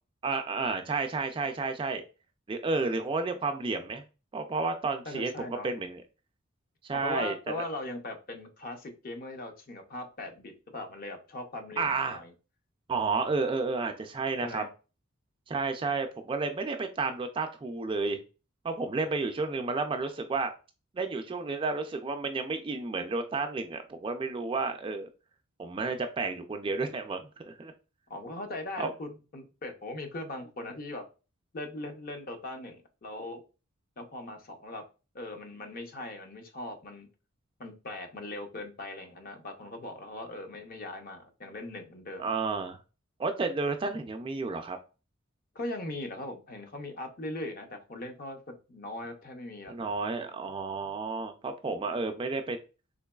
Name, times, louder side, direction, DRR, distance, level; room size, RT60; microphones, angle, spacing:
voice 1, 0.2-2.0 2.5-4.0 4.3-6.0 6.8-7.3 11.8-12.2 12.9-14.6 15.5-18.2 18.6-20.5 20.9-25.1 25.6-27.7 28.8-28.9 42.2-42.8 43.2-44.8 49.7-52.6, right 3 dB, 25° right, 6 dB, 0.3 m, -31 dB
voice 2, 5.1-5.7 6.9-12.3 14.4-14.7 28.1-31.0 31.5-33.4 34.0-34.8 35.1-37.1 37.6-42.3 45.5-49.9, left 2 dB, 45° left, 5 dB, 0.6 m, -40 dB
3.8 x 3.0 x 2.2 m, 0.32 s
head